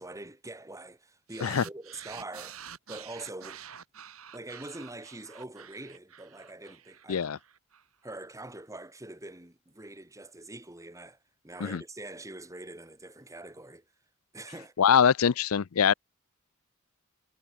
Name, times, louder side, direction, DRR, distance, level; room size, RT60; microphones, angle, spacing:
voice 1, 0.0-3.6 4.3-7.4 8.0-11.2 11.4-13.8 14.3-14.7, right 2 dB, 15° right, 2.6 m, -44 dB
sound 1, 1.3-7.8, right 9 dB, 75° right, 2.5 m, -48 dB
voice 2, 14.8-15.9, left 7 dB, 75° left, 0.5 m, -23 dB
head